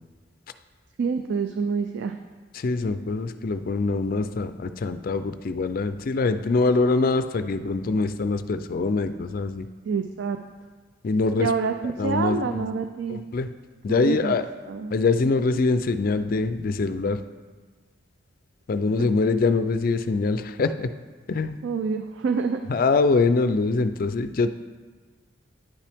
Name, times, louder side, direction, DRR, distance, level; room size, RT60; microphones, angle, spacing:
voice 1, 1.0-2.1 9.9-10.4 11.4-13.2 13.9-14.4 14.7-14.9 19.0-19.1 21.6-22.6, right 5 dB, 65° right, 7 dB, 0.3 m, -27 dB
voice 2, 2.5-9.7 11.0-11.5 12.0-12.7 13.1-13.5 13.8-14.5 14.9-17.2 18.7-20.9 21.3-21.6 22.7-24.5, left 3 dB, 45° left, 10 dB, 0.4 m, -24 dB
10.0 x 5.6 x 3.5 m, 1.4 s
head